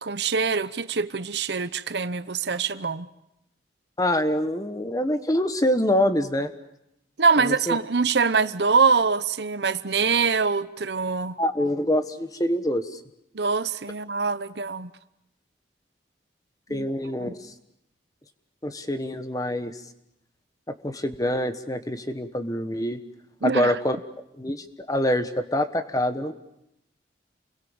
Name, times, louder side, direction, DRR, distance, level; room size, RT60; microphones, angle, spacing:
voice 1, 0.0-3.1 7.2-11.4 13.3-14.9 16.7-16.9 17.2-17.3 23.4-23.8, right 5 dB, 75° right, 0.9 m, -24 dB
voice 2, 4.0-6.5 7.4-7.8 11.4-12.8 16.7-17.3 18.6-19.7 20.7-23.0 23.4-24.0 24.4-26.3, left 1 dB, 20° left, 1.4 m, -25 dB
29.5 x 22.0 x 7.3 m
head